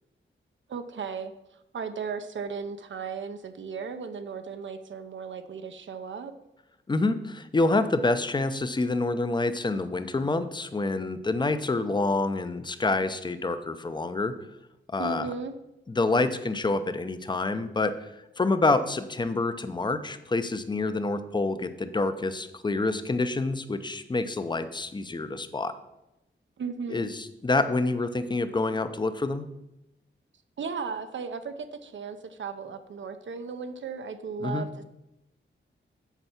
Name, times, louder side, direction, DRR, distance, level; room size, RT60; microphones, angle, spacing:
voice 1, 0.7-1.3 1.7-6.3 15.0-15.5 26.6-27.1 30.6-34.7, right 5 dB, 70° right, 9 dB, 0.6 m, -35 dB
voice 2, 6.9-14.3 14.9-15.3 15.9-17.9 18.4-25.7 26.9-29.5 34.4-34.6, left 3 dB, 20° left, 11 dB, 0.5 m, -27 dB
8.1 x 4.5 x 5.7 m, 0.92 s
wide cardioid pair, 135°, 20 cm